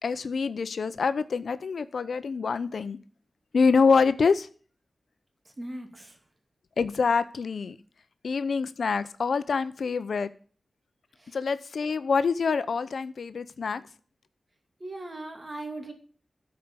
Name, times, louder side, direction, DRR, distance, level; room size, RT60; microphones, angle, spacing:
voice 1, 0.0-3.0 3.5-4.5 6.8-7.8 8.2-10.3 11.3-13.8, left 5 dB, 80° left, 13 dB, 0.7 m, -26 dB
voice 2, 5.6-6.2 11.2-11.3 14.8-15.9, right 2 dB, 30° right, 5 dB, 2.4 m, -38 dB
12.5 x 5.1 x 6.8 m, 0.42 s
wide cardioid pair, 90°, 0 cm